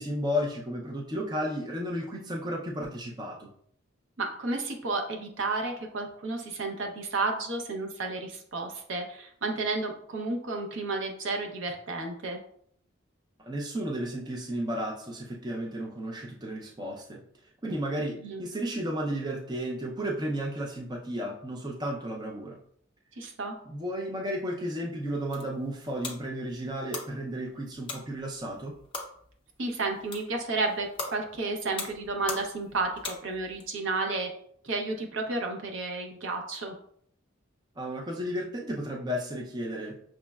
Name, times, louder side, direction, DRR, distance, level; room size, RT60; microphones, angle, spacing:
voice 1, 0.0-3.5 13.5-17.2 17.6-22.6 23.7-28.7 37.8-39.9, equal, 20° right, -1 dB, 0.5 m, -33 dB
voice 2, 4.2-12.4 18.2-18.4 23.2-23.5 29.6-34.3 34.6-36.7, right 3 dB, 70° right, 2 dB, 0.7 m, -32 dB
sound 1, 25.0-33.6, left 3 dB, 25° left, 0.6 m, -42 dB
6.1 x 2.1 x 2.3 m, 0.65 s
head